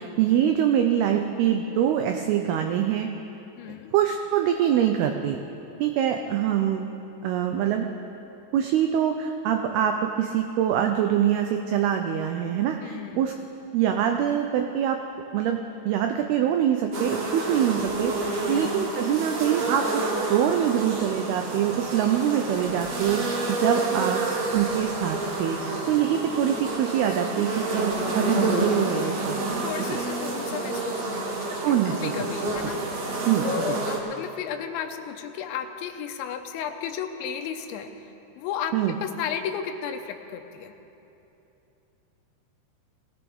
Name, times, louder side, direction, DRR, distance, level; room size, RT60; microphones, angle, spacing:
voice 1, 0.0-3.1 3.9-5.4 5.8-6.9 7.2-7.9 8.5-13.3 13.7-15.0 15.3-15.6 15.9-24.2 24.5-29.4 29.9-30.0 31.6-32.1 33.3-33.8 38.7-38.9, right 10 dB, 90° right, 5 dB, 2.2 m, -24 dB
voice 2, 3.6-3.9 12.8-13.2 18.4-18.7 23.7-24.1 29.6-38.1 38.4-40.7, left 8 dB, 85° left, 6 dB, 3.1 m, -34 dB
sound 1, 16.9-34.0, right 2 dB, 60° right, 1.7 m, -29 dB
20.0 x 17.5 x 3.5 m, 3.0 s
omnidirectional pair, 5.3 m